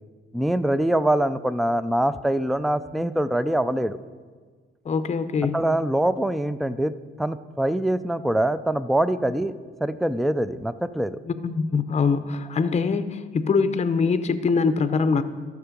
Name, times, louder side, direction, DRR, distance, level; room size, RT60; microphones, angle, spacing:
voice 1, 0.3-4.0 5.5-9.5 9.8-11.2, right 1 dB, ahead, 14 dB, 0.4 m, -24 dB
voice 2, 4.9-5.6 11.3-15.2, left 5 dB, 35° left, 11 dB, 0.6 m, -23 dB
13.0 x 6.6 x 5.2 m, 1.5 s
cardioid pair, 90°, 20 cm